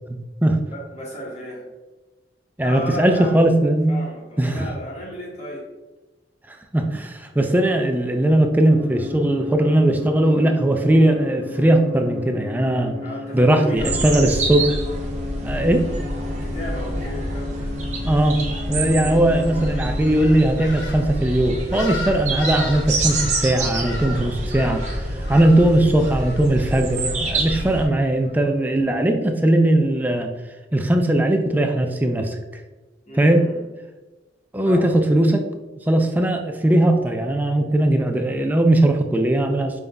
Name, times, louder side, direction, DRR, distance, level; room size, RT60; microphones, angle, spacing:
voice 1, 0.1-0.6 2.6-4.0 4.4-4.7 6.5-12.9 13.3-14.8 15.4-15.8 18.0-18.4 18.7-25.0 25.3-30.3 30.7-32.4 33.1-33.4 34.5-35.4 35.9-39.8, right 1 dB, 10° right, 4 dB, 0.3 m, -19 dB
voice 2, 0.7-1.7 2.6-3.4 3.9-5.7 13.0-14.3 16.3-17.8 18.9-19.2 33.1-33.6 34.6-34.9, equal, 40° left, -4 dB, 1.2 m, -34 dB
sound 1, 8.7-20.2, left 4 dB, 10° left, 0.8 m, -35 dB
sound 2, 13.8-27.8, right 2 dB, 40° right, 0.7 m, -27 dB
sound 3, 19.4-28.5, left 2 dB, 75° left, 0.8 m, -38 dB
5.2 x 3.6 x 2.2 m, 1.2 s
head